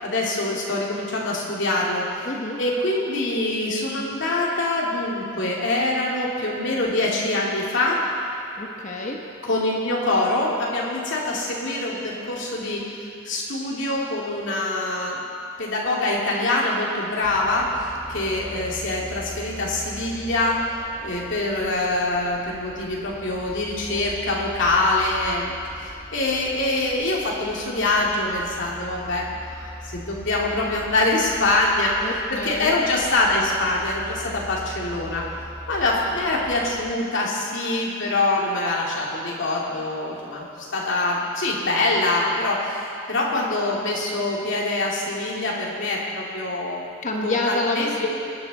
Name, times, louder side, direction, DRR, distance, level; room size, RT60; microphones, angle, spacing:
voice 1, 0.0-2.3 2.6-8.0 9.4-12.8 13.2-15.2 15.6-20.6 21.0-31.9 32.3-35.3 35.7-46.9 47.2-47.9, left 2 dB, 60° left, -4 dB, 2.7 m, -24 dB
voice 2, 2.3-2.6 8.6-9.2 32.0-32.7 47.0-48.3, left 2 dB, 35° left, 0 dB, 1.2 m, -27 dB
sound 1, 17.2-36.9, equal, 10° left, 1.1 m, -41 dB
22.5 x 10.5 x 4.2 m, 2.5 s
head